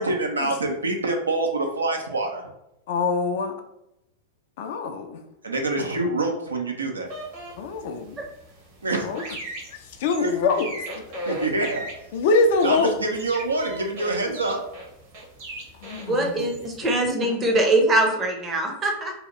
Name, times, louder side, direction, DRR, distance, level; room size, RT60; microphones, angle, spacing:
voice 1, 0.0-2.4 5.4-7.1 8.8-9.1 10.2-10.4 11.3-11.8 12.6-14.6, right 2 dB, 75° right, 3 dB, 0.5 m, -26 dB
voice 2, 2.9-3.5 4.6-5.2 7.6-8.2 9.0-9.2 10.0-10.7 12.1-12.9 15.8-16.3 17.2-17.5, left 3 dB, 50° left, 6 dB, 0.4 m, -23 dB
sound 1, 7.1-17.0, right 1 dB, 50° right, 1.0 m, -39 dB
voice 3, 16.0-19.1, right 1 dB, 20° right, 2 dB, 0.7 m, -22 dB
2.8 x 2.3 x 3.0 m, 0.82 s
figure-of-eight pair, 90°, 0 cm